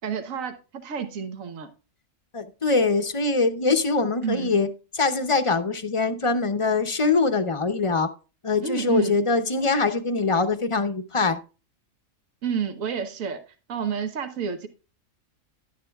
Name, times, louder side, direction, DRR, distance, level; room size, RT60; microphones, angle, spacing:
voice 1, 0.0-1.7 4.2-4.5 8.6-9.2 12.4-13.4 13.7-14.7, right 7 dB, 85° right, 1.4 m, -29 dB
voice 2, 2.3-4.7 4.9-8.1 8.4-11.4, left 3 dB, 30° left, 0.7 m, -23 dB
11.0 x 10.0 x 2.3 m
omnidirectional pair, 1.4 m